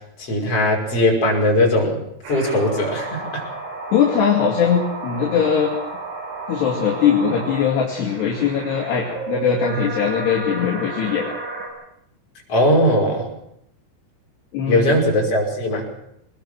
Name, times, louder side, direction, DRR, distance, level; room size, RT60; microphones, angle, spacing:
voice 1, 0.2-2.0 2.3-3.4 12.5-13.3 14.7-15.9, left 1 dB, 30° left, 0 dB, 6.4 m, -19 dB
sound 1, 2.2-11.7, right 3 dB, 80° right, 8.1 m, -32 dB
voice 2, 3.9-5.7 6.5-11.3 14.5-15.0, left 7 dB, 60° left, -3 dB, 4.3 m, -20 dB
24.5 x 20.0 x 6.2 m, 0.77 s
omnidirectional pair, 5.6 m